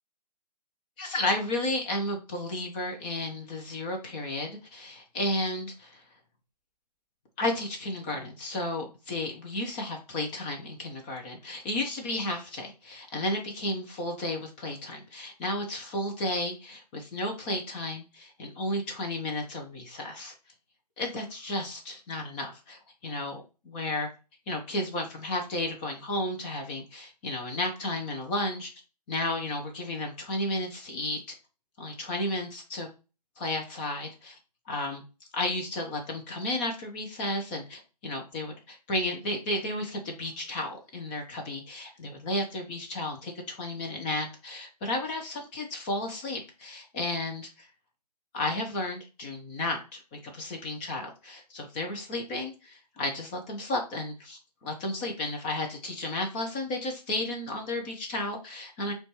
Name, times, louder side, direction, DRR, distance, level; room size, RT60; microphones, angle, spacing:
voice 1, 1.0-6.0 7.4-20.3 21.0-24.1 24.5-28.7 29.1-31.2 31.8-32.9 33.4-34.4 34.7-35.0 35.3-47.7 48.3-58.9, left 1 dB, 15° left, 2 dB, 0.4 m, -33 dB
5.1 x 2.3 x 2.9 m, 0.31 s
hypercardioid pair, 145°, 21 cm